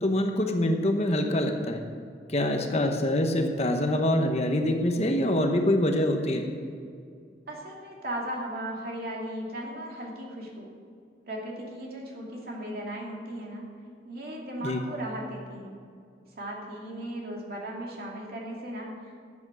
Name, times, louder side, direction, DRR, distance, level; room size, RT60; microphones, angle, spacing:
voice 1, 0.0-1.8 2.3-6.4 13.9-14.0 14.6-14.8, left 1 dB, 35° left, 4 dB, 1.0 m, -25 dB
voice 2, 7.5-10.7 11.3-13.7 14.0-15.8 16.4-19.3, right 1 dB, 55° right, -2 dB, 2.7 m, -37 dB
13.5 x 7.9 x 6.2 m, 2.3 s
head